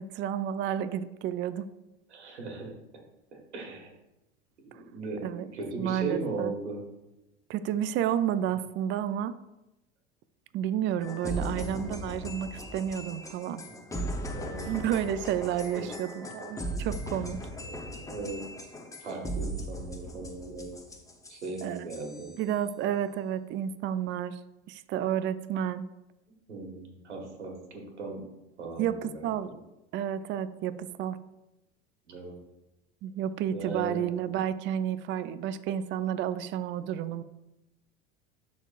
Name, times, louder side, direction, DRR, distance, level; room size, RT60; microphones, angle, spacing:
voice 1, 0.0-1.7 4.7-4.8 5.2-5.5 5.8-6.5 7.5-9.3 10.5-13.6 14.7-17.4 21.6-21.9 22.4-24.4 24.7-25.9 28.8-29.5 29.9-31.2 33.0-37.2, right 10 dB, 35° right, 13 dB, 0.4 m, -31 dB
voice 2, 2.1-2.7 3.5-3.9 4.6-6.8 11.2-11.6 13.7-13.9 14.3-15.0 15.8-15.9 17.5-18.4 19.0-20.7 21.3-22.3 26.5-28.3 28.6-29.6 32.1-32.4 33.5-34.0, right 3 dB, 90° right, 1 dB, 1.8 m, -38 dB
sound 1, 11.0-22.4, right 1 dB, 10° left, 0.8 m, -38 dB
11.5 x 4.1 x 2.4 m, 0.95 s
hypercardioid pair, 85°, 33 cm